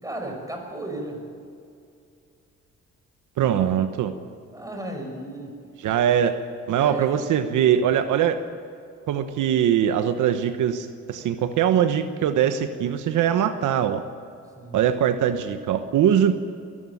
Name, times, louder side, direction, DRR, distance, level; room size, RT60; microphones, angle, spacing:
voice 1, 0.0-1.3 4.5-5.6 6.7-7.1 14.6-14.8, right 1 dB, 10° right, 2 dB, 5.8 m, -34 dB
voice 2, 3.4-4.1 5.8-6.4 6.7-8.4 9.1-14.0 14.7-16.3, right 9 dB, 80° right, 9 dB, 1.1 m, -22 dB
21.0 x 13.0 x 9.6 m, 2.4 s
cardioid pair, 90°, 30 cm